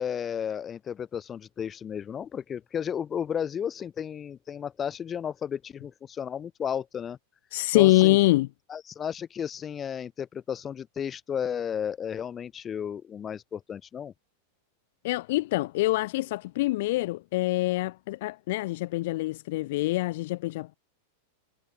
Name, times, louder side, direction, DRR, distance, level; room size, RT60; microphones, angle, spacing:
voice 1, 0.0-7.2 7.7-8.2 8.7-14.1, left 8 dB, 25° left, 1.5 m, -33 dB
voice 2, 7.5-8.5 15.0-20.8, left 18 dB, 50° left, 0.5 m, -25 dB
figure-of-eight pair, 90°, 0 cm